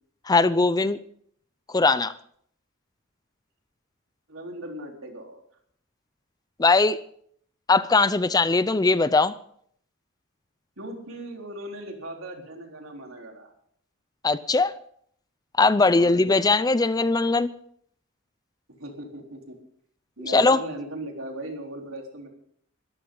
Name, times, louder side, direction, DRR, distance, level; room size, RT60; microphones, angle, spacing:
voice 1, 0.3-1.0 1.7-2.1 6.6-7.0 7.7-9.3 14.2-14.8 15.6-17.5 20.3-20.6, left 3 dB, 20° left, 0.5 m, -20 dB
voice 2, 4.3-5.4 10.8-13.5 15.9-16.4 18.8-19.6 20.2-22.3, right 1 dB, 75° right, 4.1 m, -38 dB
21.5 x 14.0 x 3.9 m
head